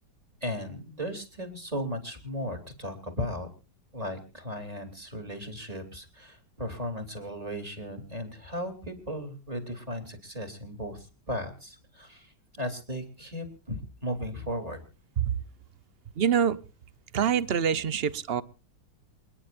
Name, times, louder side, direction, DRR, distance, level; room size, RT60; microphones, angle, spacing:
voice 1, 0.4-3.5 3.9-14.8, equal, 20° right, 7 dB, 3.3 m, -36 dB
voice 2, 16.2-16.6 17.1-18.4, right 8 dB, 45° right, 17 dB, 0.8 m, -25 dB
28.0 x 10.5 x 2.5 m, 0.34 s
omnidirectional pair, 1.9 m